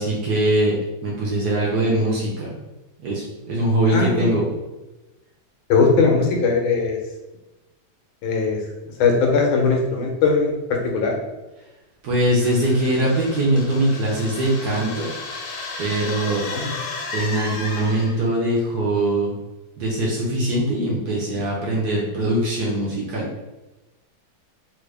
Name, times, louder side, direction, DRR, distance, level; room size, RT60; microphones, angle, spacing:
voice 1, 0.0-2.5 3.0-4.5 12.0-15.1 15.8-16.4 17.1-19.3 19.8-23.3, right 1 dB, 65° right, -4 dB, 1.1 m, -22 dB
voice 2, 3.9-4.3 5.7-7.0 8.2-8.6 9.0-10.5 10.8-11.2 16.5-16.7, left 4 dB, 85° left, 1 dB, 1.5 m, -19 dB
sound 1, 12.4-18.3, left 3 dB, 65° left, 1.2 m, -33 dB
3.4 x 2.5 x 3.2 m, 1.1 s
omnidirectional pair, 2.2 m